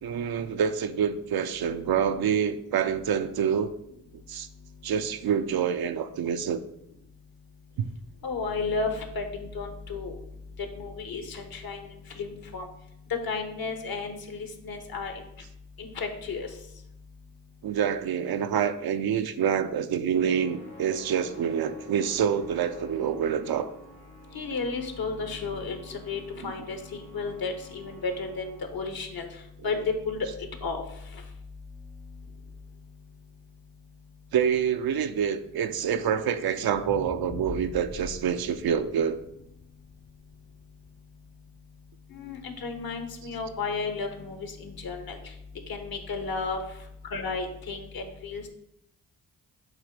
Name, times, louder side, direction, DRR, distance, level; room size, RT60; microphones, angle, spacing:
voice 1, 0.0-3.7 4.3-4.5 4.8-6.6 7.8-7.9 17.6-23.7 26.4-26.5 34.3-39.2, right 8 dB, 70° right, 9 dB, 0.6 m, -27 dB
voice 2, 8.2-10.2 10.8-12.6 13.2-15.1 15.8-16.5 24.3-29.3 29.6-29.8 30.0-30.3 30.6-30.8 42.1-45.2 45.7-46.6 47.1-48.5, left 4 dB, 65° left, 6 dB, 1.2 m, -33 dB
sound 1, 20.2-28.7, left 1 dB, 85° left, 1.6 m, -49 dB
sound 2, 36.7-41.0 41.5-41.6, left 3 dB, 20° left, 0.5 m, -43 dB
7.4 x 2.8 x 5.2 m, 0.79 s
supercardioid pair, 45°, 39 cm